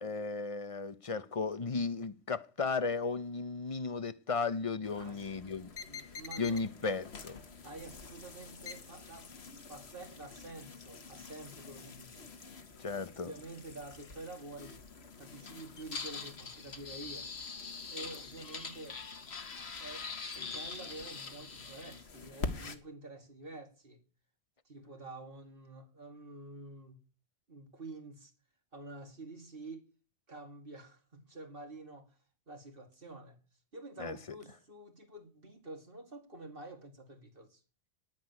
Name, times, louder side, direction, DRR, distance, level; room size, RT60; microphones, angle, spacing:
voice 1, 0.0-5.7 6.4-7.4 12.8-13.3 34.0-34.2, left 4 dB, 35° left, 0.8 m, -35 dB
sound 1, 4.8-22.8, left 4 dB, 65° left, 1.7 m, -45 dB
voice 2, 5.0-5.5 5.8-6.7 7.6-9.3 9.7-12.3 13.2-14.8 15.2-17.3 17.9-19.0 19.8-24.0 24.6-27.0 27.5-28.3 28.7-29.9 30.3-32.2 32.5-33.4 33.7-37.6, right 2 dB, 55° right, 2.7 m, -48 dB
10.5 x 10.0 x 9.8 m
omnidirectional pair, 1.2 m